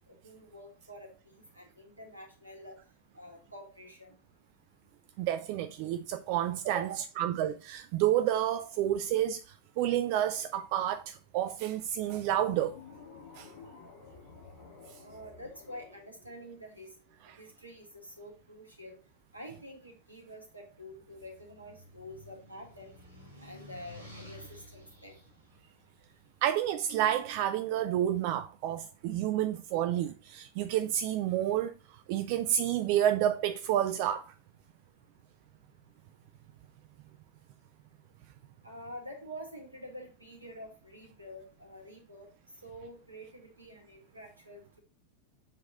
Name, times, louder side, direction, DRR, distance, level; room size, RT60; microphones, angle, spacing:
voice 1, 0.1-2.8 3.1-4.2 6.7-7.0 15.0-16.9 17.4-19.0 19.3-23.0 23.4-25.2 38.6-42.3 42.6-44.8, equal, 85° right, 1.9 m, -47 dB
voice 2, 5.2-6.9 7.2-9.4 9.8-12.7 13.4-13.5 26.4-31.7 32.1-34.3, right 11 dB, 45° right, 0.4 m, -29 dB
sound 1, 12.0-17.2, left 5 dB, 50° left, 1.9 m, -53 dB
sound 2, 20.6-26.9, left 1 dB, 90° left, 2.8 m, -53 dB
7.2 x 4.1 x 3.8 m
figure-of-eight pair, 90°, 0 cm